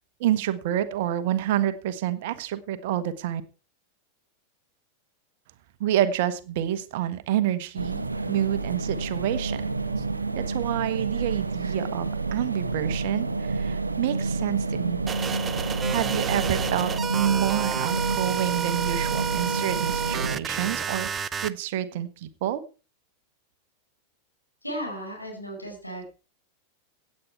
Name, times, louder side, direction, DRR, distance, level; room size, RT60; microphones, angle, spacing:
voice 1, 0.2-3.4 5.8-9.6 10.3-15.0 15.9-22.6, right 12 dB, 50° right, 12 dB, 1.3 m, -28 dB
sound 1, 7.7-20.4, right 3 dB, 80° right, 1.1 m, -29 dB
sound 2, 15.1-21.5, right 7 dB, 20° right, 0.7 m, -30 dB
voice 2, 24.6-26.1, equal, 90° left, -1 dB, 5.0 m, -35 dB
17.0 x 8.7 x 4.6 m, 0.35 s
figure-of-eight pair, 90°, 0 cm